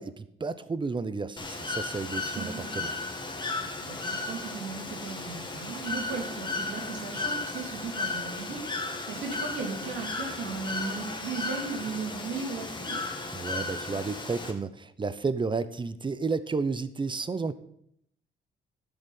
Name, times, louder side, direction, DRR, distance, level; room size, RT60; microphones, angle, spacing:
voice 1, 0.0-2.9 13.3-17.5, right 4 dB, 25° right, 15 dB, 0.8 m, -32 dB
Bird / Water, 1.4-14.5, left 3 dB, 25° left, 1.8 m, -35 dB
voice 2, 2.4-2.7 3.8-13.0, right 4 dB, 80° right, 2 dB, 2.7 m, -37 dB
12.0 x 7.1 x 5.5 m, 0.71 s
cardioid pair, 90°, 20 cm